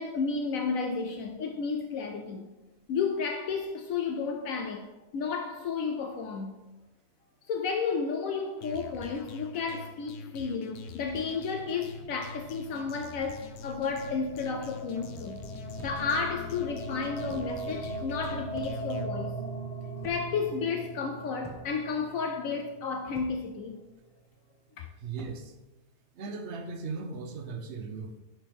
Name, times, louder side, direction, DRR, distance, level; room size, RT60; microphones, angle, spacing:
voice 1, 0.0-2.5 2.9-6.5 7.5-15.4 15.8-19.3 20.0-23.8 24.8-24.9, left 5 dB, 70° left, 1.0 m, -32 dB
sound 1, 8.6-19.1, left 3 dB, 90° left, 1.1 m, -46 dB
sound 2, 11.5-23.7, right 1 dB, 30° left, 1.3 m, -40 dB
sound 3, 15.8-16.2 17.3-17.6 18.5-19.0 20.0-20.4 21.4-21.8 23.1-23.5 25.1-25.5, right 1 dB, 5° left, 0.7 m, -48 dB
voice 2, 25.0-25.5 26.1-28.2, right 4 dB, 55° right, 1.0 m, -38 dB
10.5 x 4.4 x 3.5 m
omnidirectional pair, 1.5 m